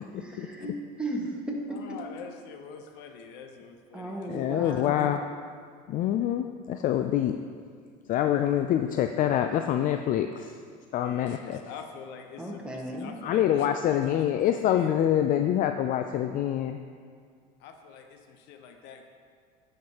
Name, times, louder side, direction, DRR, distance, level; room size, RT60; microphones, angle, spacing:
voice 1, 0.0-2.0 3.9-5.3 12.4-13.1, right 1 dB, 5° right, -2 dB, 1.5 m, -36 dB
voice 2, 1.7-4.7 11.0-15.3 17.6-19.0, left 6 dB, 65° left, 5 dB, 0.8 m, -45 dB
voice 3, 4.3-5.2 5.9-7.4 8.1-10.6 10.9-11.6 13.2-16.8, left 11 dB, 45° left, 8 dB, 0.4 m, -26 dB
10.0 x 6.5 x 2.9 m, 2.1 s
hypercardioid pair, 85°, 19 cm